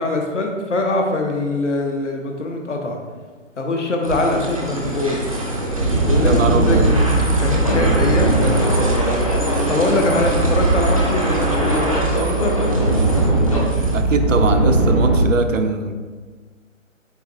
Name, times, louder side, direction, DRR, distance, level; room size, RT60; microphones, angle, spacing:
voice 1, 0.0-3.0 3.6-5.2 6.0-7.0 7.4-9.3 9.7-12.6, left 2 dB, 65° left, 2 dB, 0.8 m, -23 dB
sound 1, 4.0-14.0, right 1 dB, 30° right, 0.4 m, -25 dB
sound 2, 5.5-15.2, right 2 dB, 25° left, 0.5 m, -19 dB
voice 2, 6.2-6.9 13.9-15.9, right 4 dB, 70° right, 6 dB, 0.6 m, -21 dB
7.9 x 2.8 x 2.4 m, 1.5 s
figure-of-eight pair, 145°, 39 cm